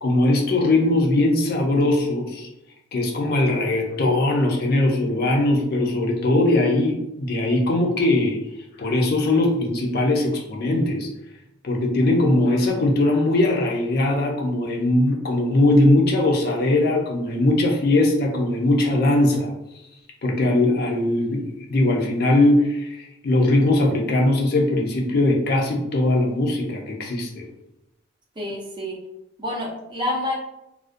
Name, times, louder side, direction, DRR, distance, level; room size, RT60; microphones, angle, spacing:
voice 1, 0.0-2.5 2.9-8.4 8.8-11.1 11.6-19.5 20.2-21.4 21.7-27.5, left 2 dB, 50° left, 1 dB, 0.4 m, -20 dB
voice 2, 28.4-29.0 29.4-30.3, left 1 dB, 25° right, -2 dB, 0.5 m, -28 dB
2.4 x 2.1 x 2.5 m, 0.88 s
head